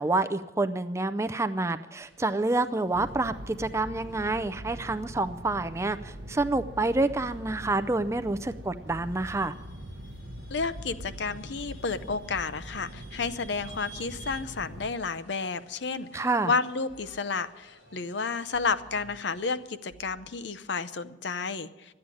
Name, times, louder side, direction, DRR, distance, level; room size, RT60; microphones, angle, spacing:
voice 1, 0.0-9.5 16.1-16.5, right 2 dB, 15° right, 10 dB, 0.4 m, -28 dB
sound 1, 2.0-19.7, right 3 dB, 85° left, 4.2 m, -56 dB
sound 2, 2.9-14.9, equal, 60° right, 0.9 m, -43 dB
sound 3, 4.2-5.2 6.3-7.2 8.9-9.2 10.5-11.2 11.9-13.2 14.3-15.2 16.9-17.2 18.5-19.2 19.9-20.3, right 4 dB, 35° left, 0.9 m, -54 dB
voice 2, 10.5-21.9, left 4 dB, 65° left, 12 dB, 0.6 m, -31 dB
12.5 x 8.7 x 9.7 m, 1.0 s
head